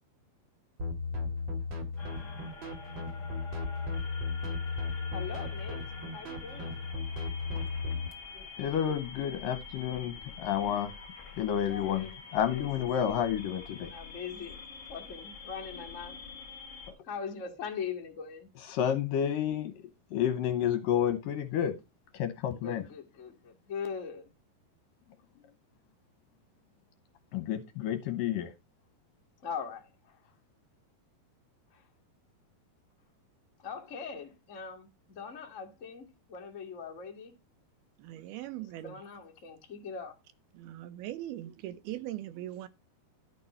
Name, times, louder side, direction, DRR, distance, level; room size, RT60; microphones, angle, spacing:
sound 1, 0.8-8.1, left 4 dB, 45° right, 1.6 m, -35 dB
sound 2, 2.0-16.9, left 4 dB, 25° left, 1.8 m, -46 dB
voice 1, 5.1-5.8 6.1-6.8 11.7-13.3 13.9-14.6 14.9-16.2 17.0-18.5 22.5-24.3 29.4-30.2 31.7-31.8 33.6-37.3 38.8-40.2, left 6 dB, 55° left, 0.8 m, -41 dB
voice 2, 8.4-10.9 11.4-12.1 12.3-13.9 18.7-19.8 20.1-21.8 22.1-22.8 27.3-28.5, left 9 dB, 75° left, 2.3 m, -30 dB
voice 3, 38.0-39.0 40.5-42.7, right 13 dB, 80° right, 2.6 m, -40 dB
11.5 x 5.3 x 5.4 m
omnidirectional pair, 4.5 m